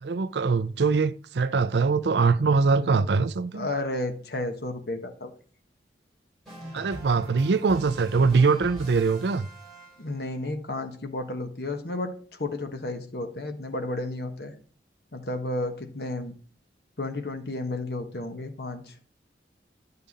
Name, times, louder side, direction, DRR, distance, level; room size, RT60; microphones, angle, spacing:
voice 1, 0.0-3.7 6.7-9.5, right 4 dB, 75° right, 0.5 m, -23 dB
voice 2, 3.5-5.3 7.2-7.3 10.0-14.5 15.1-16.3 17.0-18.9, left 2 dB, 65° left, 1.3 m, -32 dB
sound 1, 6.4-10.3, right 1 dB, ahead, 3.8 m, -44 dB
10.0 x 5.5 x 4.1 m
head